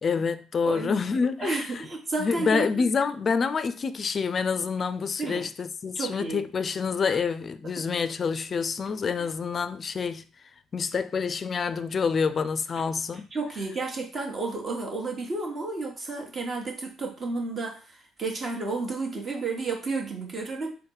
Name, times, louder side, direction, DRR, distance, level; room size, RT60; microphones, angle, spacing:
voice 1, 0.0-1.9 2.2-13.2, left 5 dB, 45° left, 0.3 m, -27 dB
voice 2, 0.6-0.9 1.4-2.7 5.2-5.5 5.9-6.5 7.9-8.0 9.2-9.3 13.1-20.8, right 3 dB, 40° right, 1.2 m, -31 dB
3.9 x 2.1 x 3.8 m
supercardioid pair, 65°, 0 cm